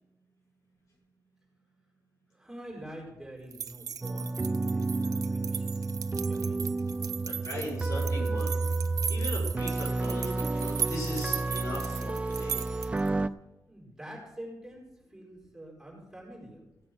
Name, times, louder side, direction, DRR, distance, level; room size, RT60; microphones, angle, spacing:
voice 1, 2.3-6.7 13.6-16.6, right 1 dB, 5° right, -3 dB, 4.4 m, -46 dB
sound 1, 3.5-13.1, right 8 dB, 75° right, 0.6 m, -38 dB
sound 2, 4.0-13.3, right 3 dB, 20° right, 0.5 m, -31 dB
voice 2, 7.2-8.6 9.1-12.6, left 1 dB, 65° left, -2 dB, 5.9 m, -38 dB
16.0 x 8.5 x 6.2 m, 0.95 s
wide cardioid pair, 155°, 6 cm